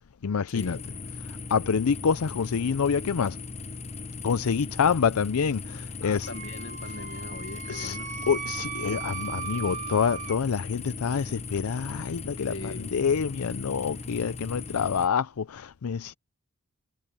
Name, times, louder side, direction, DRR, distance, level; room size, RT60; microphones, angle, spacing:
voice 1, 0.2-0.8 1.2-3.4 4.2-6.3 7.7-8.0 8.3-16.1, left 6 dB, 90° left, 0.5 m, -27 dB
sound 1, 0.6-15.1, left 4 dB, 30° left, 0.7 m, -38 dB
voice 2, 6.0-8.1 12.5-13.0, left 2 dB, 65° left, 1.4 m, -41 dB
Wind instrument woodwind instrument, 6.2-10.4, right 8 dB, 35° right, 0.9 m, -37 dB
head